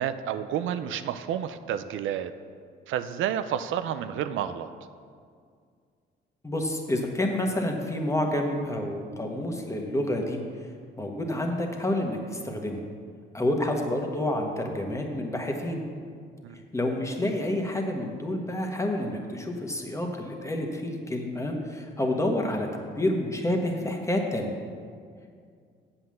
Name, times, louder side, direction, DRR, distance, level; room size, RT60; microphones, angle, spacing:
voice 1, 0.0-2.3 2.9-4.7 16.4-16.6, right 9 dB, 80° right, 10 dB, 0.5 m, -30 dB
voice 2, 6.4-10.4 11.0-12.8 13.3-15.8 16.7-22.7 23.0-24.5, left 1 dB, 15° left, 2 dB, 1.4 m, -28 dB
7.9 x 5.7 x 7.6 m, 2.2 s
cardioid pair, 90°, 20 cm